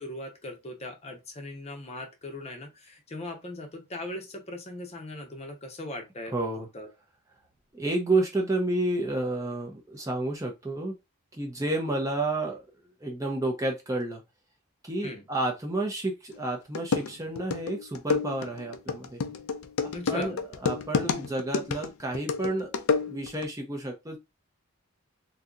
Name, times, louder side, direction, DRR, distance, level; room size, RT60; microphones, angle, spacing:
voice 1, 0.0-6.9 15.0-15.3 19.9-20.3, left 1 dB, 30° left, 0.7 m, -39 dB
voice 2, 6.3-6.7 7.7-11.0 11.3-12.7 13.0-14.2 14.8-19.2 19.8-22.7 23.1-24.2, right 2 dB, 15° right, 0.6 m, -30 dB
sound 1, 16.3-16.4 16.7-23.4, left 5 dB, 85° left, 0.5 m, -29 dB
3.9 x 2.7 x 2.4 m
head